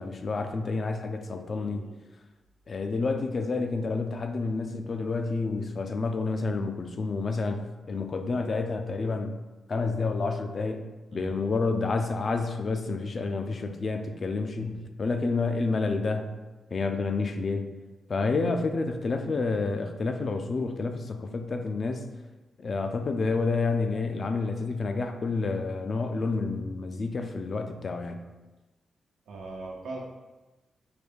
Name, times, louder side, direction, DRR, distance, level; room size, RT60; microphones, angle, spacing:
voice 1, 0.0-1.9 2.7-7.6 7.9-9.4 9.7-10.9 11.1-16.3 16.7-17.7 18.1-22.1 22.6-28.3, left 3 dB, 45° left, 6 dB, 0.3 m, -29 dB
voice 2, 1.5-2.0 11.1-11.3 14.6-15.0 29.3-30.0, right 2 dB, 85° right, -1 dB, 0.7 m, -41 dB
4.7 x 2.2 x 3.4 m, 1.2 s
cardioid pair, 100°, 0 cm